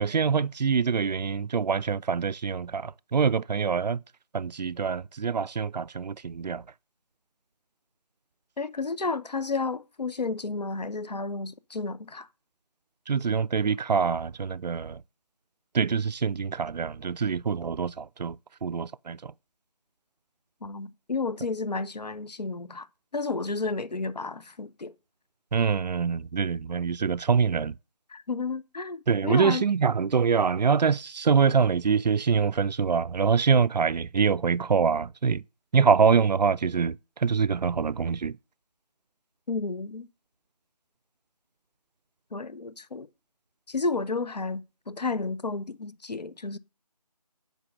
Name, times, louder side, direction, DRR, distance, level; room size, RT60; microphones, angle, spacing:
voice 1, 0.0-4.0 4.3-6.6 13.1-15.0 15.7-18.4 18.6-19.2 25.5-27.7 29.1-35.4 35.7-37.0 37.2-38.3, right 6 dB, 90° right, 0.4 m, -25 dB
voice 2, 8.6-12.3 20.6-22.9 23.1-24.9 28.1-29.7 39.5-40.1 42.3-43.1 43.7-46.6, left 3 dB, 80° left, 0.8 m, -32 dB
9.0 x 5.4 x 6.4 m
figure-of-eight pair, 175°, 21 cm